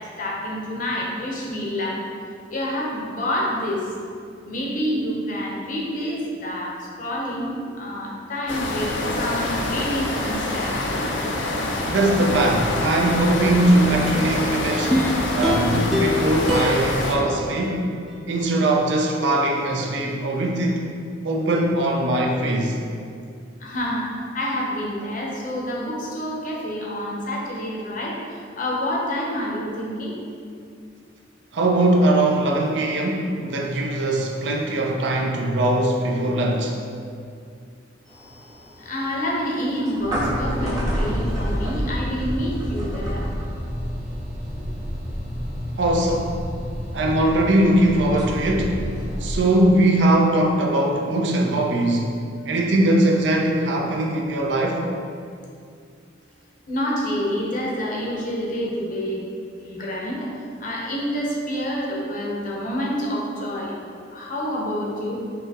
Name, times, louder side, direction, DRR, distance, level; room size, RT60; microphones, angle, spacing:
voice 1, 0.2-1.9 2.5-3.8 4.4-8.9 9.2-10.7 23.6-24.1 24.3-28.1 28.6-30.1 38.8-43.2 56.7-59.2 59.6-60.3 60.6-63.7 64.1-65.1, equal, 45° left, -3 dB, 0.7 m, -27 dB
sound 1, 8.5-17.2, left 2 dB, 85° left, 0.5 m, -26 dB
voice 2, 11.9-15.0 15.3-17.9 18.3-20.9 21.2-22.8 31.5-36.8 45.8-46.3 46.9-48.8 49.2-52.2 52.5-54.9, right 1 dB, 70° right, 0 dB, 0.5 m, -21 dB
sound 2, 14.9-18.2 18.6-18.7, left 1 dB, ahead, 0.3 m, -25 dB
sound 3, 38.1-49.4, equal, 20° right, 0.7 m, -29 dB
5.3 x 2.8 x 2.8 m, 2.3 s
head